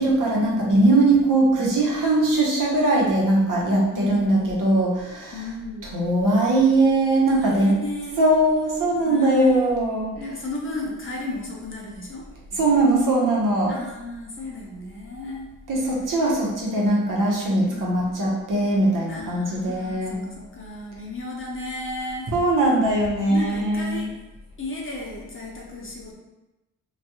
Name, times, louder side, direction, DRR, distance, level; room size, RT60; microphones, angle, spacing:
voice 1, 0.0-5.3 5.9-7.7 8.2-10.1 12.5-13.7 15.7-20.2 22.3-24.1, right 2 dB, 65° right, -3 dB, 0.8 m, -20 dB
voice 2, 1.1-1.5 3.9-4.6 5.3-5.9 7.3-8.2 9.0-9.8 10.2-12.3 13.7-15.5 15.9-16.3 17.7-18.0 19.1-22.3 22.7-22.8 23.3-24.1 24.6-26.1, left 2 dB, 35° left, -3 dB, 0.8 m, -34 dB
2.3 x 2.2 x 2.9 m, 1.0 s
cardioid pair, 50°, 34 cm